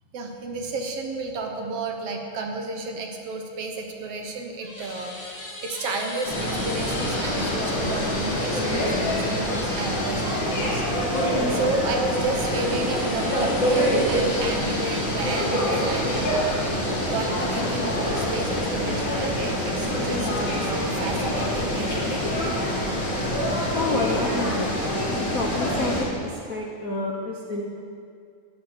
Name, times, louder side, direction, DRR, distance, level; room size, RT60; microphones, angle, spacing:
voice 1, 0.1-10.8 11.5-16.3 16.9-20.3 20.6-22.2, right 3 dB, 60° right, 3 dB, 2.0 m, -32 dB
sound 1, 3.9-11.3 12.3-20.2 21.1-22.7, left 2 dB, 35° left, 1.1 m, -39 dB
sound 2, 6.3-26.0, equal, 55° left, 4.2 m, -25 dB
voice 2, 23.7-24.8 25.1-27.6, left 2 dB, 75° left, -1 dB, 0.7 m, -29 dB
13.5 x 6.7 x 9.7 m, 2.2 s
omnidirectional pair, 3.3 m